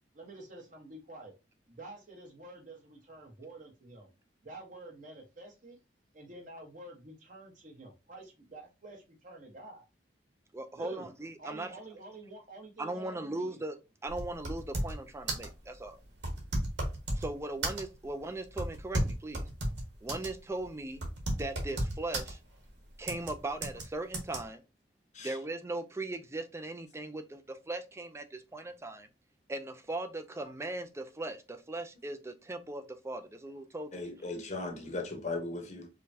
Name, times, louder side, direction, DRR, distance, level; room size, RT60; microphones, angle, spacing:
voice 1, 0.1-1.3 1.7-4.1 4.4-5.8 6.1-9.8 10.7-11.1 11.4-13.6, right 2 dB, 45° right, 1.2 m, -49 dB
voice 2, 10.5-11.7 12.8-13.8 14.0-16.0 17.1-19.4 20.0-21.0 21.4-22.4 23.0-24.6 25.2-29.1 29.5-33.9, right 2 dB, 15° right, 0.4 m, -38 dB
sound 1, 14.1-15.0 15.3-15.5 16.2-17.3 17.6-18.1 18.6-20.3 20.6-20.7 21.0-22.3 23.1-23.3 23.6-23.8 24.1-24.4, right 1 dB, 80° right, 1.3 m, -33 dB
voice 3, 33.9-35.9, left 2 dB, 40° left, 0.8 m, -37 dB
4.9 x 2.2 x 2.7 m
head